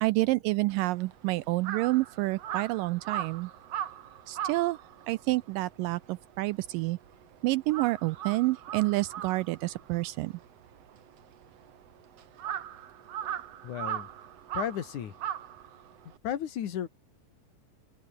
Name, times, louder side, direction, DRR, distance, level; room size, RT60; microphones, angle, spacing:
voice 1, 0.0-3.5 4.3-4.8 5.1-7.0 7.4-10.3, right 20 dB, 80° right, 2.1 m, -28 dB
Crow, 0.7-7.2 7.5-16.2, right 10 dB, 55° right, 2.2 m, -39 dB
voice 2, 13.6-14.1 14.5-15.1 16.2-16.9, left 10 dB, 60° left, 3.2 m, -33 dB
omnidirectional pair, 4.0 m